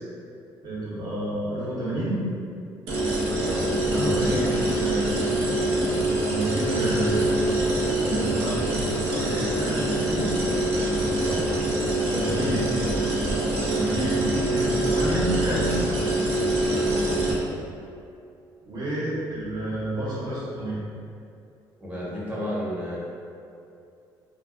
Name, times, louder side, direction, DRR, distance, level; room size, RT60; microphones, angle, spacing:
voice 1, 0.6-2.2 3.8-5.0 6.3-7.5 8.0-8.6 9.1-10.3 12.0-12.6 13.7-15.7 18.6-20.8, right 1 dB, 45° right, -8 dB, 0.9 m, -30 dB
sound 1, 2.9-17.3, right 1 dB, 70° right, 0.6 m, -25 dB
voice 2, 3.4-4.8 11.2-11.5 12.1-12.5 16.7-17.2 21.8-23.0, equal, 15° right, -7 dB, 0.9 m, -32 dB
2.3 x 2.3 x 2.4 m, 2.5 s
supercardioid pair, 65°, 10 cm